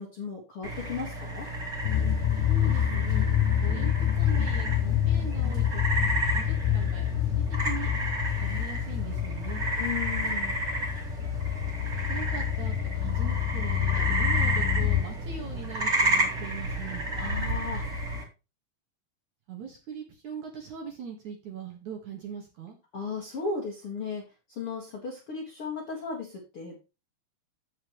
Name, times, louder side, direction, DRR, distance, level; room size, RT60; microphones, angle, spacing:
voice 1, 0.0-1.5 9.8-10.5 17.1-17.9 22.9-24.2 24.5-26.8, left 5 dB, 70° left, -2 dB, 1.3 m, -35 dB
sound 1, 0.6-18.2, right 1 dB, 25° right, 2.1 m, -32 dB
sound 2, 1.8-15.0, left 11 dB, 90° left, 3.3 m, -27 dB
voice 2, 2.5-3.3 3.6-5.8 6.2-7.9 8.4-9.6 12.1-17.1 19.5-22.8, right 7 dB, 60° right, 1 dB, 2.0 m, -41 dB
15.0 x 5.5 x 3.1 m, 0.29 s
omnidirectional pair, 5.6 m